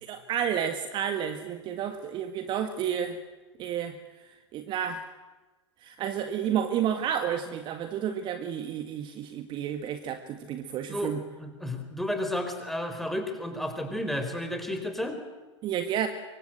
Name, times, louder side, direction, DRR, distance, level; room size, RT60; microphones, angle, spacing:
voice 1, 0.0-3.2 3.6-4.0 4.5-5.1 5.8-11.2 15.6-16.1, right 9 dB, 30° right, 8 dB, 1.8 m, -31 dB
voice 2, 11.4-15.2, left 1 dB, ahead, 6 dB, 4.6 m, -32 dB
26.0 x 24.0 x 8.0 m, 1.2 s
figure-of-eight pair, 100°, 15 cm